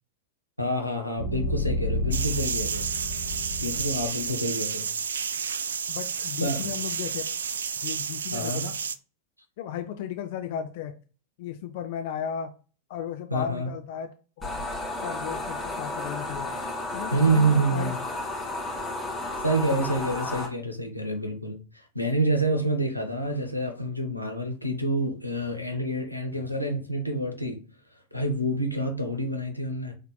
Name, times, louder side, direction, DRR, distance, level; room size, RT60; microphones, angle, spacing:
voice 1, 0.6-2.9 3.6-4.9 6.4-6.6 8.3-8.7 13.3-13.7 17.1-18.0 19.4-21.6 21.9-27.6 28.1-29.9, right 1 dB, 90° left, 0.8 m, -27 dB
sound 1, 1.2-4.3, left 1 dB, 70° left, 1.7 m, -30 dB
sound 2, 2.1-9.0, right 6 dB, 70° right, 0.3 m, -31 dB
voice 2, 5.9-7.2 7.8-8.7 9.6-10.9 11.4-12.5 12.9-14.1 14.4-14.5 15.0-16.6 16.9-18.0, left 9 dB, 50° left, 0.4 m, -35 dB
sound 3, 14.4-20.5, left 2 dB, 15° left, 1.8 m, -33 dB
5.2 x 4.1 x 2.3 m
figure-of-eight pair, 90°, 0 cm